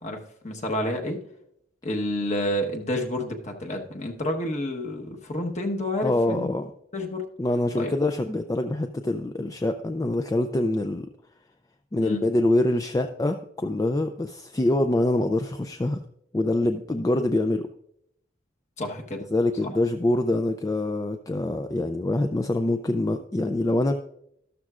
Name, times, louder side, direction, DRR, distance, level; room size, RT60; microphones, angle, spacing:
voice 1, 0.0-1.2 1.8-6.5 6.9-7.2 7.7-7.9 12.0-12.2 18.8-19.2, left 1 dB, 40° left, 2 dB, 1.2 m, -29 dB
voice 2, 6.0-6.7 7.4-11.1 11.9-16.0 16.3-17.7 19.3-23.9, left 1 dB, 20° left, 7 dB, 0.4 m, -25 dB
13.0 x 12.5 x 2.4 m, 0.75 s
head